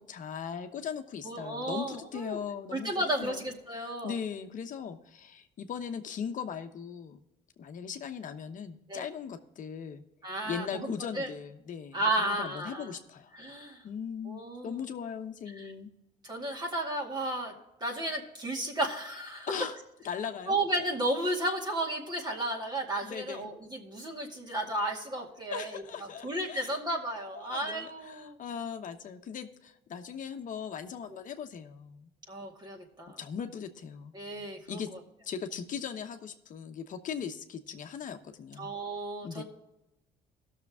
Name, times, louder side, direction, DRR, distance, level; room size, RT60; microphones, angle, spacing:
voice 1, 0.0-3.4 3.8-7.2 7.6-10.0 10.4-13.3 13.8-15.9 19.5-19.8 20.0-20.6 23.0-23.5 25.5-26.8 27.3-32.1 33.2-34.9 35.2-38.7 39.2-39.4, left 7 dB, 50° left, 6 dB, 1.0 m, -39 dB
voice 2, 1.2-2.4 2.7-4.1 8.9-9.0 10.2-11.3 11.9-13.0 13.3-13.8 14.3-14.8 16.2-17.5 17.8-19.5 20.5-28.4 32.3-33.2 34.1-34.8 38.6-39.4, right 1 dB, 25° right, 0 dB, 2.2 m, -33 dB
16.5 x 6.7 x 3.6 m, 0.90 s
cardioid pair, 110°, 17 cm